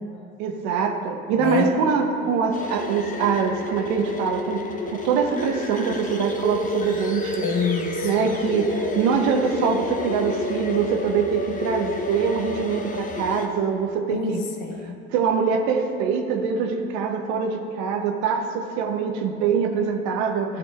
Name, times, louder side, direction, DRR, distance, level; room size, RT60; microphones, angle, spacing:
voice 1, 0.4-7.5 8.0-14.4 15.1-20.6, right 6 dB, 65° right, 4 dB, 0.7 m, -24 dB
voice 2, 1.4-1.7 7.4-8.1 14.1-15.0 20.5-20.6, left 5 dB, 70° left, 3 dB, 1.0 m, -26 dB
sound 1, 2.5-13.5, left 2 dB, 25° left, 0.9 m, -30 dB
12.5 x 5.2 x 2.4 m, 2.7 s
hypercardioid pair, 70°, 31 cm